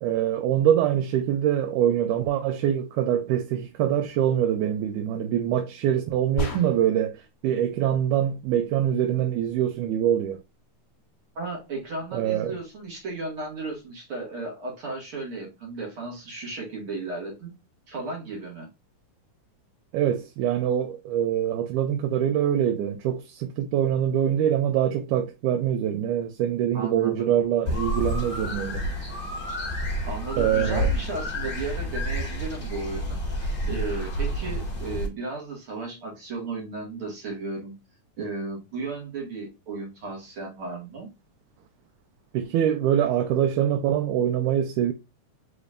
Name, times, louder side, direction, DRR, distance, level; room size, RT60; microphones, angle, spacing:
voice 1, 0.0-10.4 12.1-12.6 19.9-28.8 30.4-30.9 42.3-44.9, right 10 dB, 85° right, 2.1 m, -24 dB
sound 1, 6.4-7.1, left 2 dB, 80° left, 0.7 m, -31 dB
voice 2, 11.4-17.5 17.9-18.7 26.7-27.3 30.0-37.7 38.2-41.1, right 3 dB, 50° right, 2.4 m, -34 dB
sound 2, 27.7-35.1, equal, 30° left, 0.9 m, -29 dB
5.2 x 4.0 x 2.4 m
omnidirectional pair, 3.5 m